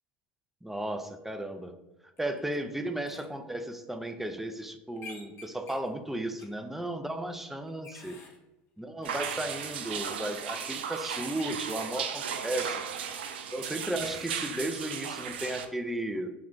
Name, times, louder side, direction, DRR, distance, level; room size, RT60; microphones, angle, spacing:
voice 1, 0.6-1.8 2.2-8.2 8.8-12.8 13.5-16.3, right 1 dB, 5° right, 7 dB, 0.4 m, -35 dB
sound 1, 2.2-2.6 3.1-3.3 5.0-5.9 6.4-6.5 7.4-8.4 9.0-10.0 11.1-13.5, left 3 dB, 45° left, 0.9 m, -51 dB
sound 2, 9.0-15.6, right 7 dB, 90° right, 0.3 m, -36 dB
3.1 x 2.3 x 3.7 m, 1.0 s
hypercardioid pair, 90°, 5 cm